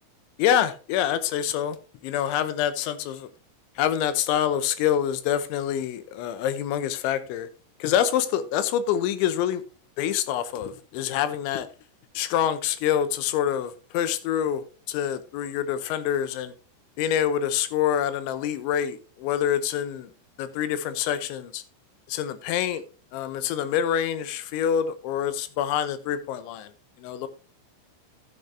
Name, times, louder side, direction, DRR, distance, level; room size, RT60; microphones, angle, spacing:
voice 1, 0.4-1.8 2.0-3.3 3.8-7.5 7.8-9.6 10.0-11.7 12.1-16.5 17.0-20.1 20.4-21.6 22.1-22.8 23.1-26.7 27.0-27.3, left 10 dB, 85° left, 3.2 m, -26 dB
13.5 x 8.6 x 2.7 m
omnidirectional pair, 5.3 m